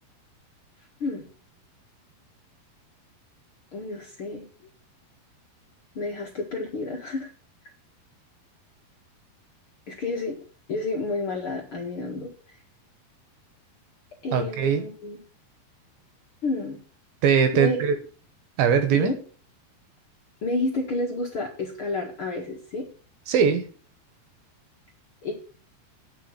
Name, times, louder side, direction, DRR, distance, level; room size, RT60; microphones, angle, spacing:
voice 1, 3.7-4.4 6.0-7.3 9.9-10.4 10.7-12.3 14.2-15.2 16.4-16.8 17.5-17.8 18.9-19.1 20.4-22.9 25.2-25.3, left 2 dB, 45° left, -1 dB, 1.9 m, -30 dB
voice 2, 14.3-14.9 17.2-18.0 18.6-19.1 23.3-23.7, right 7 dB, 70° right, 9 dB, 2.6 m, -21 dB
9.4 x 5.6 x 8.0 m, 0.40 s
omnidirectional pair, 4.8 m